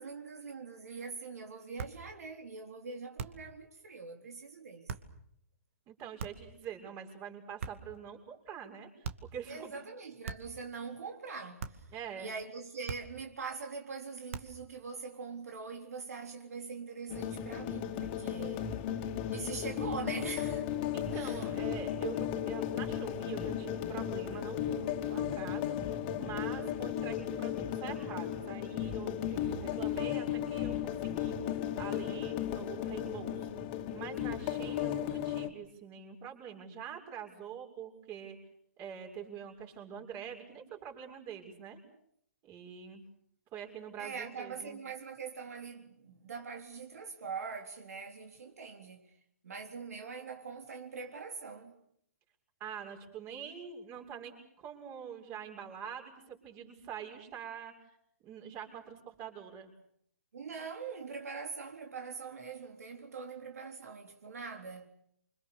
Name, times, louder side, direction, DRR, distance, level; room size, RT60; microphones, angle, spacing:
voice 1, 0.0-4.9 9.5-11.9 12.2-18.8 19.3-20.6 21.1-21.5 44.0-49.1 49.4-51.7 60.3-64.9, right 5 dB, 75° right, 3.9 m, -43 dB
sound 1, 1.8-2.1 3.2-3.5 4.9-5.2 6.2-6.6 7.6-8.0 9.0-9.4 10.2-10.7 11.6-11.9 12.9-13.3 14.3-14.7, right 6 dB, 55° right, 2.4 m, -42 dB
voice 2, 5.9-9.8 11.9-12.3 20.9-33.5 33.9-38.4 38.8-41.8 42.4-43.0 43.5-44.8 52.6-57.7 58.2-59.7, right 8 dB, 30° right, 6.8 m, -45 dB
sound 2, 17.1-35.5, left 10 dB, 35° left, 2.7 m, -35 dB
28.5 x 26.0 x 6.9 m
hypercardioid pair, 140°, 8 cm